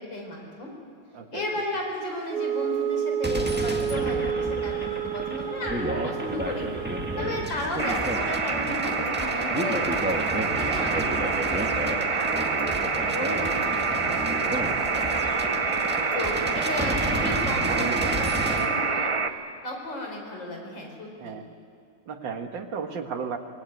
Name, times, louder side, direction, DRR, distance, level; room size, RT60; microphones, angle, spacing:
voice 1, 0.1-0.7 1.3-6.7 7.2-10.1 10.5-15.0 15.3-15.5 16.1-19.1 19.6-21.3, left 2 dB, 80° left, 1 dB, 5.1 m, -34 dB
voice 2, 1.1-1.5 5.9-6.4 10.9-11.4 15.9-16.5 17.7-18.2 18.4-18.9 21.2-21.5 22.1-23.4, right 6 dB, 85° right, 5 dB, 2.3 m, -36 dB
Wind instrument woodwind instrument, 2.3-7.6, right 9 dB, 70° right, 1.4 m, -30 dB
sound 1, 3.2-18.7, right 1 dB, 5° right, 1.6 m, -32 dB
sound 2, 7.8-19.3, right 4 dB, 35° right, 0.5 m, -27 dB
25.0 x 19.5 x 9.4 m, 2.3 s
omnidirectional pair, 2.0 m